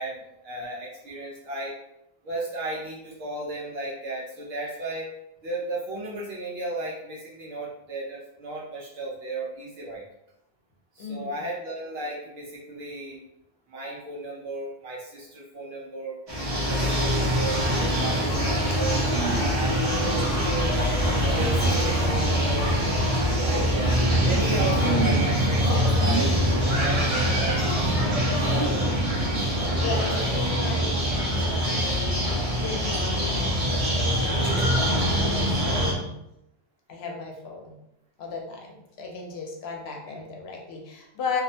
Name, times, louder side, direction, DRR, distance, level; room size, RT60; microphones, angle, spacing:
voice 1, 0.0-1.7 2.2-5.1 5.4-10.0 10.9-13.2 13.7-16.2 16.5-19.0 19.5-22.8 23.2-28.6 30.1-30.3 40.1-40.2, right 2 dB, 70° right, -4 dB, 0.8 m, -34 dB
voice 2, 11.0-11.4 29.8-32.2 32.5-36.2 36.9-37.8 38.2-41.4, left 4 dB, 75° left, 1 dB, 0.8 m, -36 dB
sound 1, 16.3-35.9, equal, 35° right, 0.8 m, -24 dB
2.5 x 2.1 x 2.6 m, 0.83 s
omnidirectional pair, 1.1 m